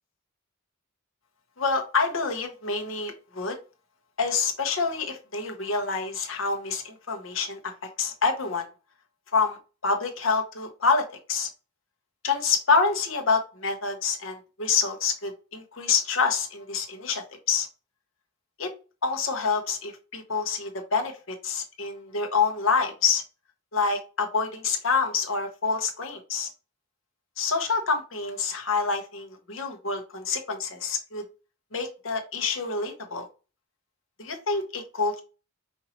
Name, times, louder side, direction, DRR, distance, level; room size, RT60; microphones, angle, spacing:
voice 1, 1.6-3.6 4.2-7.6 8.0-8.7 9.3-9.6 9.8-11.5 12.2-17.7 18.6-18.7 19.0-23.2 23.7-26.5 27.4-31.2 31.7-33.3 34.2-35.2, left 4 dB, 70° left, 4 dB, 1.1 m, -27 dB
5.4 x 2.7 x 3.0 m, 0.33 s
head